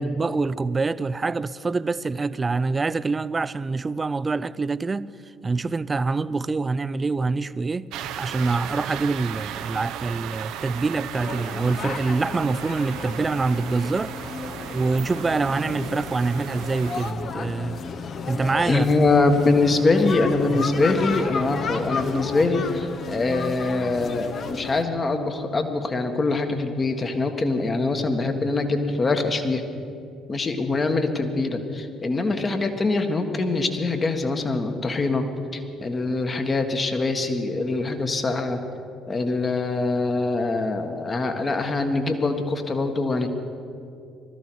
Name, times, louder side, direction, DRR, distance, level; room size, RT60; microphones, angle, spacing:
voice 1, 0.0-5.1 5.4-7.9 8.2-14.1 14.7-17.8 18.3-18.9 20.5-20.7, right 3 dB, 30° right, 0.4 m, -25 dB
sound 1, 7.9-17.1, right 10 dB, 65° right, 0.7 m, -36 dB
sound 2, 11.1-24.8, left 4 dB, 50° left, 1.0 m, -33 dB
voice 2, 18.7-29.6 30.3-35.2 35.5-38.6 39.1-43.3, left 3 dB, 35° left, 1.6 m, -23 dB
20.0 x 13.5 x 4.7 m
hypercardioid pair, 50°, 0 cm